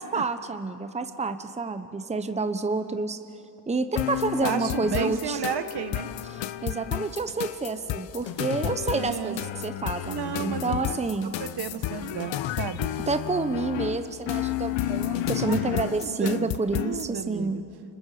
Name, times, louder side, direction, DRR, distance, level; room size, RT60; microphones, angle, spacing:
voice 1, 0.0-3.2 3.7-5.4 6.6-11.3 13.1-17.6, right 3 dB, 15° right, 9 dB, 0.9 m, -29 dB
sound 1, 4.0-17.1, left 12 dB, 90° left, 0.8 m, -31 dB
voice 2, 4.4-6.1 8.9-9.4 10.1-12.9 15.2-16.6 16.8-17.6, right 8 dB, 60° right, 10 dB, 1.2 m, -34 dB
29.5 x 26.0 x 5.0 m, 2.9 s
cardioid pair, 115°, 44 cm